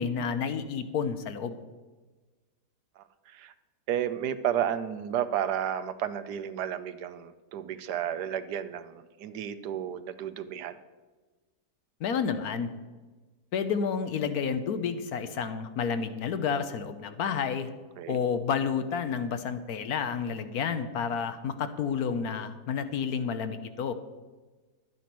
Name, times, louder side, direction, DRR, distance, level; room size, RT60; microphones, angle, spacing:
voice 1, 0.0-1.6 12.0-12.7 13.5-17.7 18.1-23.9, left 6 dB, 70° left, 10 dB, 1.2 m, -30 dB
voice 2, 3.0-3.5 3.9-10.8 18.0-18.2, right 10 dB, 80° right, 12 dB, 1.3 m, -32 dB
11.5 x 9.3 x 6.0 m, 1.3 s
omnidirectional pair, 1.7 m